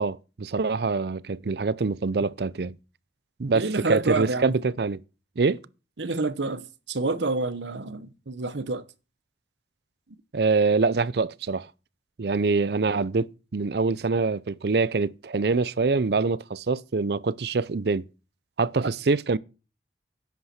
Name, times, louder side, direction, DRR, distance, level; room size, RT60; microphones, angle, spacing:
voice 1, 0.0-2.8 3.4-5.0 5.4-5.6 10.3-11.7 12.2-18.1 18.6-19.4, right 4 dB, 60° right, 0.6 m, -25 dB
voice 2, 3.5-4.5 6.0-8.8 18.8-18.9, right 3 dB, 90° right, 1.0 m, -28 dB
10.5 x 8.2 x 5.8 m
head